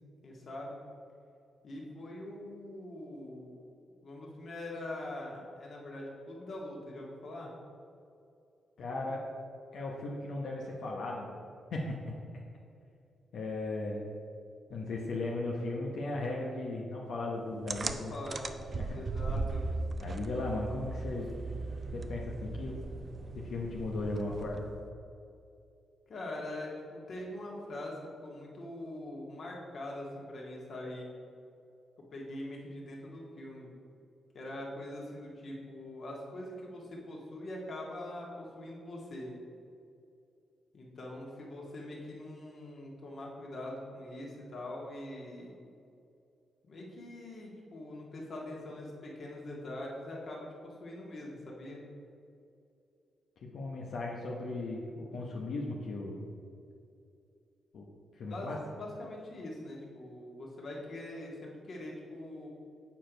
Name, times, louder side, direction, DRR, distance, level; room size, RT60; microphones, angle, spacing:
voice 1, 0.2-0.8 1.6-3.6 4.0-7.5 17.5-18.5 18.9-19.6 26.1-31.1 32.1-33.7 34.3-39.3 40.7-45.5 46.7-51.8 58.3-62.5, left 1 dB, 55° left, -2 dB, 1.8 m, -43 dB
voice 2, 8.8-9.2 9.7-11.4 11.7-11.8 13.3-14.0 14.7-18.1 18.7-19.0 20.0-21.3 21.9-22.8 23.4-24.7 53.5-56.3 57.7-57.8 58.2-58.6, left 2 dB, 70° left, -2 dB, 0.9 m, -36 dB
sound 1, 17.7-24.8, right 3 dB, 40° right, 0.4 m, -38 dB
7.3 x 4.6 x 5.1 m, 2.6 s
cardioid pair, 80°, 0 cm